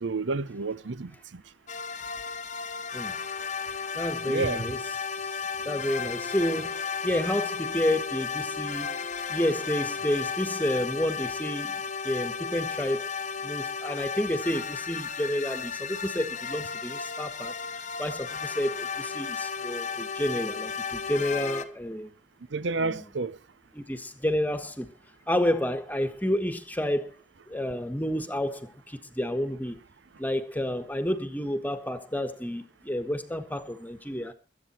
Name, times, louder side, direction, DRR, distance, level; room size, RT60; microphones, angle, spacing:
voice 1, 0.0-1.4 4.3-4.7 22.5-23.4, right 3 dB, 70° right, 0.7 m, -30 dB
sound 1, 1.7-21.6, left 6 dB, 40° left, 1.1 m, -34 dB
voice 2, 3.9-4.8 5.2-5.3 5.6-9.0 9.3-11.7 12.0-13.0 13.4-17.5 18.0-22.1 22.8-23.1 23.7-24.9 25.3-27.1 27.5-29.8 30.2-34.3, left 1 dB, 10° left, 1.4 m, -30 dB
22.5 x 8.9 x 4.4 m
head